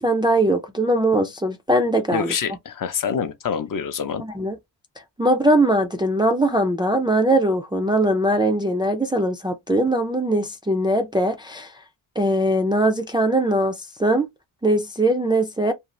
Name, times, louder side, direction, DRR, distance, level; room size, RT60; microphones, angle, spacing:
voice 1, 0.0-2.3 4.2-4.6 5.2-11.7 12.2-14.3 14.6-15.7, right 1 dB, 10° right, 0.3 m, -21 dB
voice 2, 2.1-4.2, left 7 dB, 50° left, 0.5 m, -26 dB
2.6 x 2.3 x 3.0 m
wide cardioid pair, 135°, 41 cm